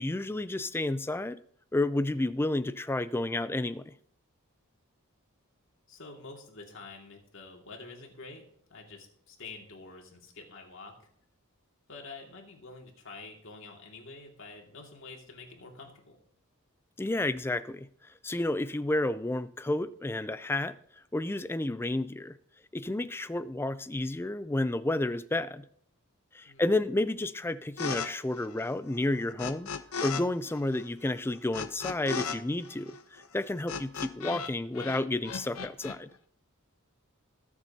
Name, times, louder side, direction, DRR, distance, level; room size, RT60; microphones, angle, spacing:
voice 1, 0.0-1.4 1.7-3.9 17.0-17.9 18.2-20.7 21.1-22.4 22.7-25.6 26.3-29.7 30.0-36.1, left 2 dB, 10° left, 0.3 m, -31 dB
voice 2, 5.9-8.4 8.7-11.1 11.9-16.2 26.5-26.6, left 3 dB, 60° left, 2.2 m, -47 dB
sound 1, 27.8-28.1 28.3-30.2 30.5-34.5 34.8-36.0, left 5 dB, 80° left, 0.7 m, -36 dB
20.5 x 7.1 x 2.8 m
head